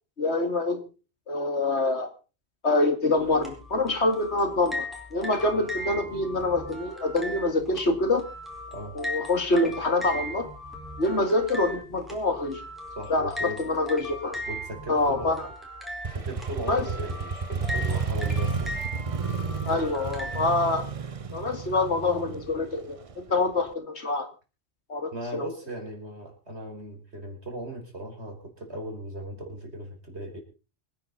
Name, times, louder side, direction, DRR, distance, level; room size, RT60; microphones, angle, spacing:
voice 1, 0.2-0.8 1.3-2.1 2.6-8.2 8.9-10.5 11.0-12.6 13.1-14.4 14.9-15.5 16.7-16.9 19.7-20.8 21.3-24.3 24.9-25.5, left 2 dB, 90° left, 7 dB, 2.8 m, -26 dB
sound 1, 3.2-20.5, left 1 dB, ahead, 4.4 m, -38 dB
voice 2, 13.0-13.6 14.5-15.5 16.1-18.8 19.7-20.1 25.1-30.4, right 1 dB, 80° right, 3 dB, 5.0 m, -38 dB
Motorcycle, 16.0-23.7, right 5 dB, 35° right, 0.8 m, -32 dB
25.5 x 9.8 x 4.1 m, 0.34 s
omnidirectional pair, 1.1 m